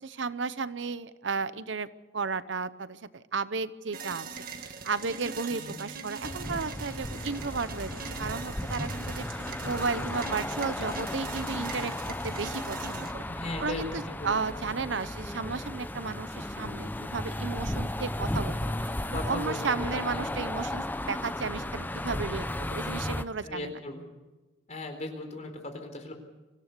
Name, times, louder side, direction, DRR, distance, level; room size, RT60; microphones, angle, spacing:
voice 1, 0.0-1.9 2.1-11.9 12.2-13.2 13.6-18.7 19.1-23.8, right 4 dB, 85° right, 15 dB, 0.8 m, -34 dB
sound 1, 3.9-13.1, right 5 dB, 50° right, 2.0 m, -41 dB
sound 2, 6.2-23.2, left 1 dB, 10° left, 0.7 m, -35 dB
voice 2, 13.3-14.6 19.1-20.3 23.4-24.1 24.7-26.1, left 2 dB, 40° left, 4 dB, 4.2 m, -38 dB
25.0 x 16.0 x 6.7 m, 1.1 s
head